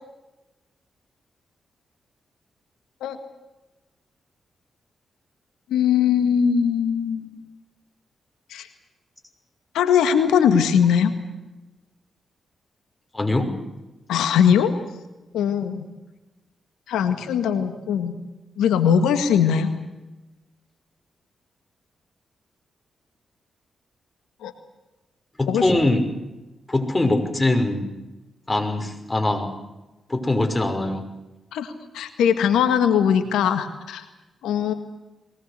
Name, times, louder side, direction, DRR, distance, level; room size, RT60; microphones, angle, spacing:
voice 1, 5.7-7.4 8.5-8.7 9.7-11.1 14.1-14.7 15.3-15.9 16.9-18.1 18.6-19.8 24.4-24.5 25.5-25.7 31.5-34.0 34.4-34.7, left 8 dB, 85° left, 9 dB, 1.8 m, -20 dB
voice 2, 13.1-13.5 25.4-26.1 26.7-27.9 28.5-29.5 30.1-31.0, left 2 dB, 20° left, 4 dB, 5.9 m, -22 dB
22.5 x 19.0 x 8.4 m, 1.0 s
supercardioid pair, 45°, 0 cm